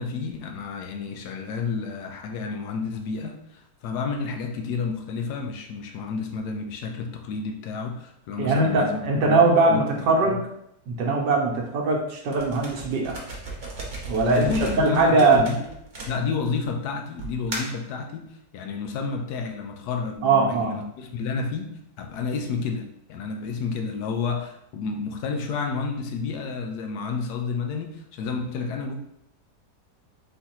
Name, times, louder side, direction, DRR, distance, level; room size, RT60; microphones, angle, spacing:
voice 1, 0.0-10.4 14.3-15.7 16.1-28.9, left 4 dB, 70° left, 4 dB, 1.2 m, -30 dB
voice 2, 8.4-10.4 10.9-13.2 14.1-14.5 14.8-15.4 20.2-20.7, right 3 dB, 80° right, -1 dB, 1.4 m, -21 dB
sound 1, 12.3-16.6 17.2-17.9, right 2 dB, 40° right, 0.7 m, -36 dB
4.2 x 3.9 x 2.9 m, 0.76 s
omnidirectional pair, 1.8 m